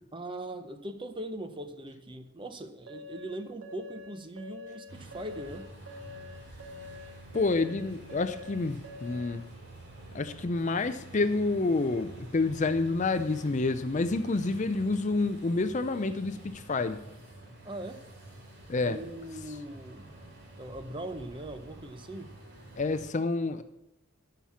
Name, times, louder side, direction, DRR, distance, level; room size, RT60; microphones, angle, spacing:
voice 1, 0.1-5.7 17.6-18.0 18.8-20.1 20.6-22.3, right 1 dB, 25° right, 9 dB, 0.7 m, -40 dB
sound 1, 2.9-9.4, left 3 dB, 85° right, 2.0 m, -46 dB
sound 2, 4.9-23.1, right 2 dB, 50° right, 3.0 m, -49 dB
voice 2, 7.3-9.4 10.1-17.0 18.7-19.0 22.8-23.6, left 3 dB, 35° left, 11 dB, 0.5 m, -28 dB
12.0 x 5.8 x 7.1 m, 0.91 s
head